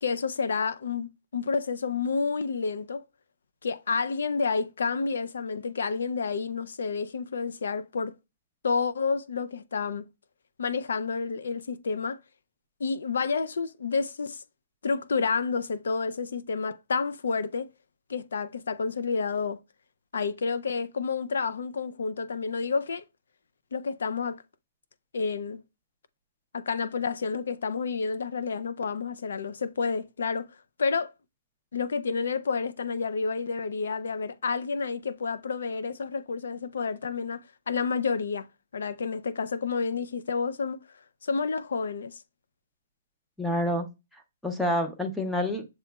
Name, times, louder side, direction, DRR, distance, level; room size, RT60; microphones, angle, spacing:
voice 1, 0.0-3.0 3.6-8.1 8.6-10.0 10.6-12.2 12.8-14.4 14.8-17.7 18.1-19.6 20.1-23.0 23.7-24.4 25.1-25.6 26.5-30.5 30.8-31.1 31.7-38.5 38.7-40.8 41.2-42.2, left 5 dB, 80° left, 0.4 m, -29 dB
voice 2, 43.4-43.9 44.1-45.7, equal, 5° left, 0.6 m, -28 dB
6.8 x 2.9 x 2.3 m
hypercardioid pair, 160°, 0 cm